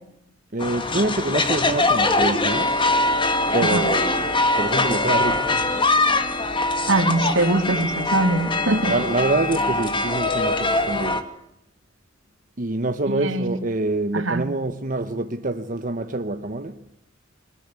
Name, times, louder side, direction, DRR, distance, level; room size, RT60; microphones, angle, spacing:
voice 1, 0.5-2.8 3.5-5.7 8.9-11.3 12.6-16.8, right 2 dB, 45° right, 1.1 m, -26 dB
sound 1, 0.6-11.2, left 2 dB, 25° left, 2.0 m, -22 dB
sound 2, 1.4-10.4, left 1 dB, 65° left, 2.9 m, -41 dB
voice 2, 6.9-8.9 13.1-13.6 14.1-14.4, right 2 dB, 80° right, 2.7 m, -22 dB
22.0 x 20.5 x 8.3 m
head